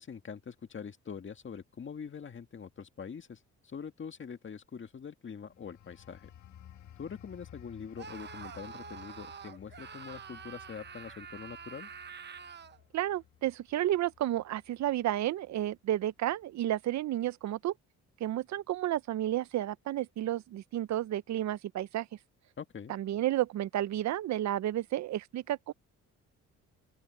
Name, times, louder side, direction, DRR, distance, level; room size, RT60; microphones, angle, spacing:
voice 1, 0.0-6.3 7.0-11.9 22.6-22.9, left 6 dB, 40° left, 1.9 m, -44 dB
sound 1, 5.5-15.9 16.3-16.6, left 10 dB, 65° left, 1.9 m, -56 dB
Screaming, 8.0-12.8, right 6 dB, 35° right, 1.0 m, -46 dB
voice 2, 12.9-17.7 18.2-22.1 22.9-25.7, right 13 dB, 65° right, 0.6 m, -31 dB
open air
cardioid pair, 90°, 30 cm